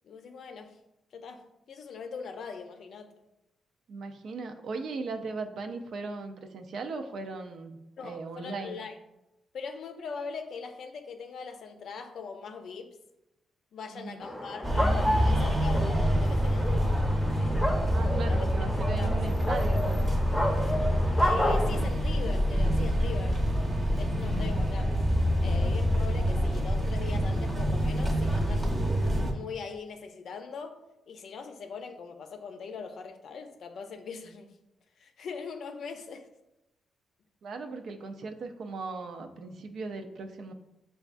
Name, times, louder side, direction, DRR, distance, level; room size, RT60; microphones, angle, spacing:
voice 1, 0.0-0.8 1.1-3.1 8.0-9.0 9.5-13.0 13.7-16.9 18.2-18.5 18.9-19.3 21.2-23.4 23.9-25.0 25.4-29.0 29.3-30.8 31.1-34.5 35.0-36.3, left 5 dB, 65° left, 6 dB, 0.5 m, -41 dB
voice 2, 3.9-8.8 13.9-14.3 17.9-20.0 37.4-40.5, right 3 dB, 65° right, 5 dB, 0.5 m, -38 dB
sound 1, 14.2-21.8, equal, 15° left, 0.6 m, -31 dB
sound 2, 14.6-29.3, equal, 30° right, 0.8 m, -26 dB
6.9 x 2.3 x 2.5 m, 0.92 s
cardioid pair, 110°, 0 cm